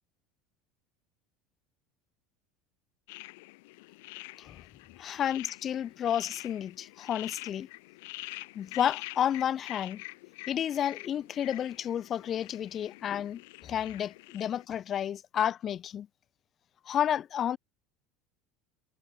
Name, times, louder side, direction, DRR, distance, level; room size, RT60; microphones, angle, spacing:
sound 1, 3.1-14.6, left 24 dB, 80° left, 5.5 m, -46 dB
voice 1, 5.0-7.7 8.5-10.0 10.5-16.1 16.9-17.6, left 9 dB, 35° left, 1.9 m, -31 dB
supercardioid pair, 140°, 0 cm